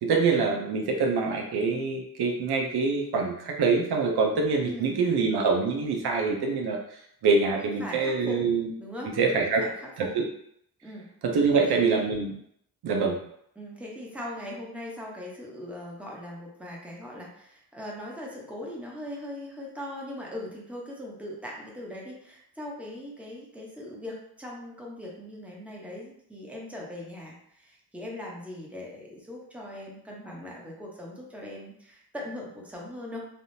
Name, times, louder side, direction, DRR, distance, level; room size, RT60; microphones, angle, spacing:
voice 1, 0.0-6.8 7.2-8.7 9.2-9.6 10.0-10.3 11.2-12.3 12.8-13.2, right 4 dB, 90° right, 1 dB, 0.6 m, -25 dB
voice 2, 7.5-8.4 8.8-10.1 10.8-11.1 11.5-11.8 13.6-33.3, left 1 dB, 5° right, -3 dB, 0.9 m, -40 dB
3.4 x 2.4 x 2.7 m, 0.70 s
cardioid pair, 90°, 37 cm